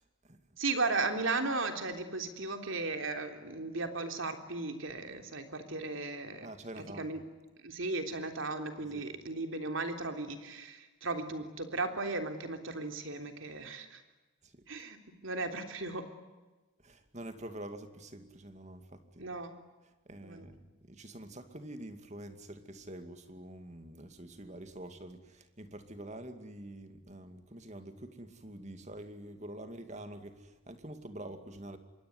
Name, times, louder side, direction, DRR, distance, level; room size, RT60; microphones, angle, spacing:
voice 1, 0.0-0.4 6.4-7.1 8.9-9.0 14.4-14.6 16.8-19.3 20.1-20.6 20.9-31.8, right 1 dB, 30° right, 8 dB, 2.4 m, -46 dB
voice 2, 0.6-6.5 7.0-7.2 7.6-14.0 14.7-16.1 19.2-19.5 20.2-20.5, right 3 dB, 65° right, 6 dB, 3.4 m, -36 dB
26.5 x 22.5 x 9.7 m, 1.2 s
head